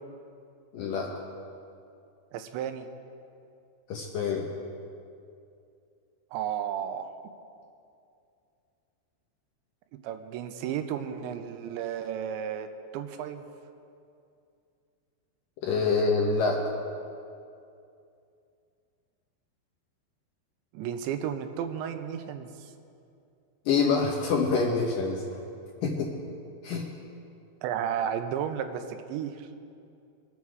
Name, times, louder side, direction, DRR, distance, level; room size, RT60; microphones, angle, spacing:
voice 1, 0.7-1.1 3.9-4.5 15.6-16.6 23.7-25.2 25.8-26.1 26.6-26.9, left 4 dB, 70° left, -1 dB, 2.2 m, -26 dB
voice 2, 2.3-2.9 6.3-7.1 10.0-12.7 12.9-13.5 20.7-22.7 27.6-29.6, right 9 dB, 85° right, 8 dB, 3.1 m, -33 dB
23.5 x 8.6 x 4.7 m, 2.5 s
omnidirectional pair, 5.1 m